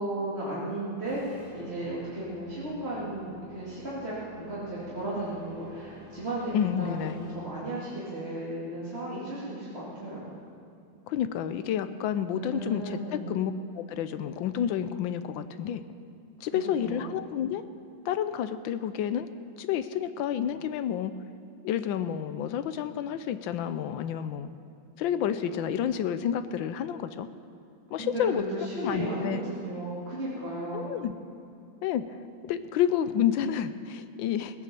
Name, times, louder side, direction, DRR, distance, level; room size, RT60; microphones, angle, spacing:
voice 1, 0.0-10.3 12.3-13.3 16.5-17.1 28.0-30.9, right 1 dB, 30° right, -9 dB, 2.5 m, -35 dB
sound 1, 1.1-7.3, left 2 dB, 45° left, 3.0 m, -52 dB
voice 2, 6.5-7.2 11.1-15.8 16.4-17.6 18.0-19.3 19.6-21.1 21.6-24.5 25.0-27.3 27.9-28.4 28.8-29.4 30.7-31.1 31.8-32.2 32.5-34.6, left 9 dB, 75° left, 12 dB, 1.3 m, -30 dB
18.0 x 9.0 x 6.9 m, 2.6 s
omnidirectional pair, 2.2 m